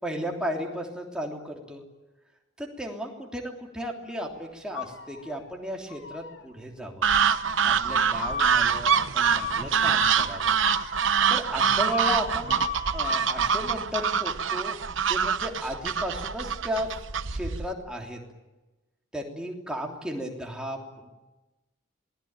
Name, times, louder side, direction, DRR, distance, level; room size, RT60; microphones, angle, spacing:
voice 1, 0.0-1.8 2.6-7.1 7.6-10.6 11.3-14.8 15.1-16.9 17.3-18.2 19.1-21.1, equal, 5° right, 0 dB, 3.2 m, -34 dB
sound 1, 4.7-5.5 5.9-6.4 7.1-13.4, left 4 dB, 60° left, 2.4 m, -36 dB
sound 2, 7.0-17.7, right 7 dB, 65° right, 1.0 m, -25 dB
27.0 x 20.0 x 9.0 m, 1.1 s
head